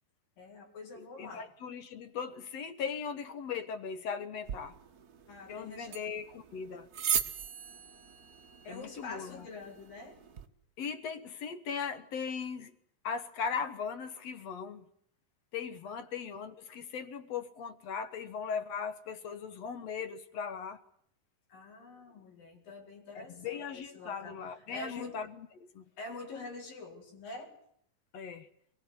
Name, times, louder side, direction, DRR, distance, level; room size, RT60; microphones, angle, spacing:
voice 1, 0.4-1.5 5.3-6.0 8.6-10.2 15.9-16.0 21.5-25.2 26.0-27.5, left 3 dB, 85° left, 6.2 m, -46 dB
voice 2, 1.2-4.8 5.5-6.9 8.7-9.5 10.8-12.7 13.0-14.8 15.5-20.8 23.2-25.9 28.1-28.5, left 6 dB, 60° left, 2.1 m, -38 dB
sound 1, 4.4-10.5, right 7 dB, 55° right, 1.0 m, -39 dB
23.5 x 21.5 x 9.6 m
omnidirectional pair, 3.9 m